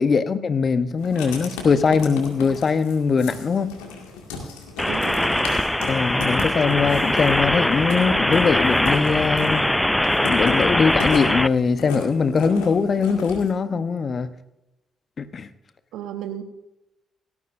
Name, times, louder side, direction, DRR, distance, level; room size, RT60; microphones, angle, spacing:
voice 1, 0.0-3.7 5.9-9.7 10.3-14.3 15.2-15.5, left 5 dB, 50° left, 11 dB, 0.9 m, -21 dB
Writing, 1.0-13.5, left 5 dB, 80° left, 2.0 m, -36 dB
sound 1, 4.8-11.5, left 1 dB, 10° left, 0.4 m, -21 dB
voice 2, 4.9-5.6 15.9-16.4, right 10 dB, 70° right, 8 dB, 1.1 m, -34 dB
17.5 x 13.5 x 2.6 m, 0.95 s
hypercardioid pair, 40°, 0 cm